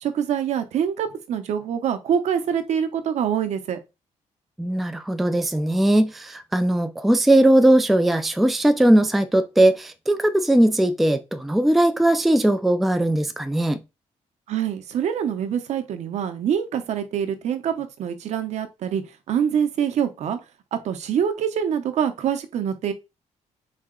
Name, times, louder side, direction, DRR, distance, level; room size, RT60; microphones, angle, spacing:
voice 1, 0.0-3.8 14.5-19.0 19.3-20.4 20.7-22.9, right 8 dB, 60° right, 0.7 m, -25 dB
voice 2, 4.6-13.8, right 1 dB, ahead, 0.3 m, -19 dB
4.1 x 2.8 x 3.7 m
cardioid pair, 165°, 13 cm